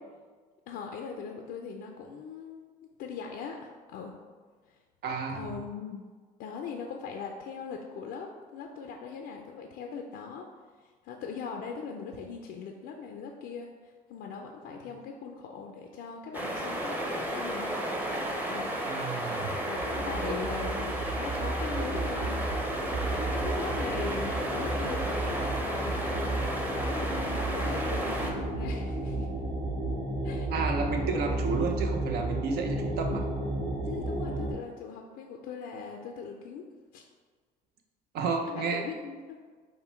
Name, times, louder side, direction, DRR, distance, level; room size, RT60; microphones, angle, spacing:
voice 1, 0.7-2.6 3.0-4.2 4.7-4.8 5.3-6.0 6.4-10.5 10.8-17.9 18.5-18.7 19.7-22.4 23.3-26.4 26.7-29.3 30.2-30.5 33.8-36.7 36.9-37.0 38.5-39.4, left 6 dB, 80° left, 2 dB, 0.5 m, -40 dB
voice 2, 5.0-5.6 14.7-14.8 18.8-19.6 30.5-33.3 38.1-38.8, right 4 dB, 70° right, 3 dB, 0.7 m, -31 dB
sound 1, 16.3-28.3, right 1 dB, 10° right, 0.7 m, -33 dB
sound 2, 19.7-34.5, right 2 dB, 90° right, 1.5 m, -33 dB
5.6 x 2.2 x 4.4 m, 1.5 s
cardioid pair, 110°, 17 cm